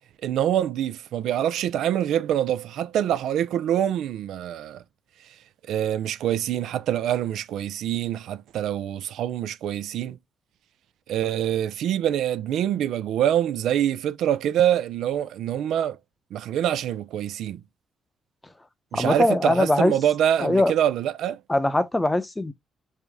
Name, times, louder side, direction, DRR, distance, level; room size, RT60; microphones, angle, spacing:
voice 1, 0.2-4.8 5.7-10.2 11.1-16.0 16.3-17.6 18.9-21.4, right 10 dB, 80° right, 0.4 m, -25 dB
voice 2, 18.9-19.9 20.4-20.7 21.5-22.5, left 1 dB, 15° left, 0.7 m, -21 dB
4.9 x 2.7 x 3.4 m
cardioid pair, 90°, 0 cm